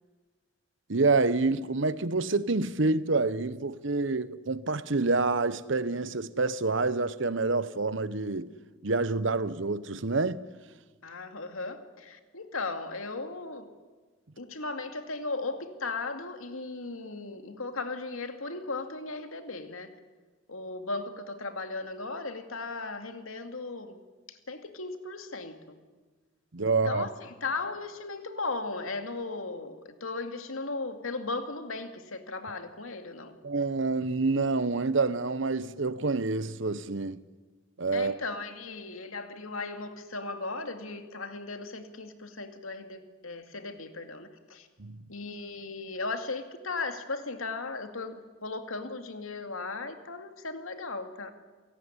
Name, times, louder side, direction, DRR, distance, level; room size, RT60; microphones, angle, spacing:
voice 1, 0.9-8.5 8.8-10.4 26.5-27.1 33.4-37.2 37.8-38.2 44.8-45.0, right 3 dB, 65° right, 0.9 m, -27 dB
voice 2, 11.0-13.7 14.4-19.9 20.5-24.0 24.3-25.8 26.7-33.4 37.9-44.7 45.1-51.3, left 3 dB, 80° left, 2.4 m, -37 dB
28.0 x 18.0 x 9.9 m
head